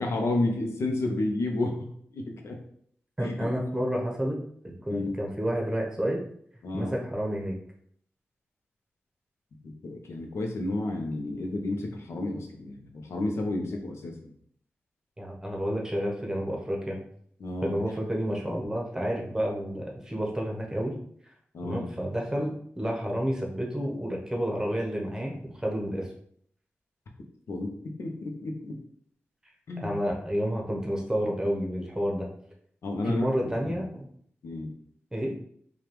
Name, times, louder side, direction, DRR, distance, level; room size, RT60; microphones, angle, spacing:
voice 1, 0.0-2.6 3.2-3.5 4.9-5.2 6.6-6.9 9.6-14.3 17.4-17.8 21.5-21.9 27.5-27.7 28.0-28.8 29.7-29.9 32.8-33.8 34.4-34.7, left 2 dB, 85° left, 2 dB, 0.7 m, -31 dB
voice 2, 3.2-4.4 4.6-6.2 6.7-7.5 15.2-17.0 17.6-20.9 21.6-26.1 29.8-32.3 33.0-34.0 35.1-35.3, equal, 15° right, -1 dB, 0.9 m, -30 dB
5.0 x 2.4 x 3.1 m, 0.64 s
wide cardioid pair, 100°, 5 cm